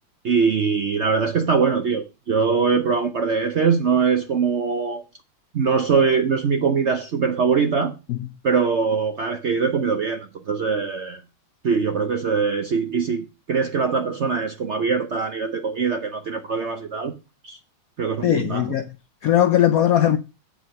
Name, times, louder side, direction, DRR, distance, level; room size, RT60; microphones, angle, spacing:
voice 1, 0.2-5.0 5.5-7.9 8.4-11.2 11.6-17.1 17.4-17.6 18.0-18.7, right 5 dB, 60° right, 0.7 m, -22 dB
voice 2, 18.2-18.9 19.2-20.2, left 11 dB, 75° left, 0.8 m, -19 dB
7.9 x 5.0 x 6.3 m
omnidirectional pair, 2.1 m